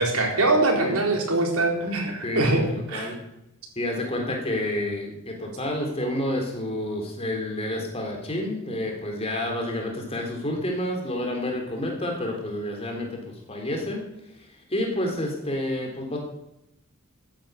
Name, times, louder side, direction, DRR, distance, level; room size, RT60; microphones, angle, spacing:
voice 1, 0.0-3.1, right 2 dB, 85° right, 1 dB, 4.4 m, -23 dB
voice 2, 2.2-3.2 3.8-14.0 14.3-16.2, left 1 dB, 25° left, 1 dB, 3.6 m, -29 dB
13.5 x 10.5 x 8.3 m, 0.86 s
head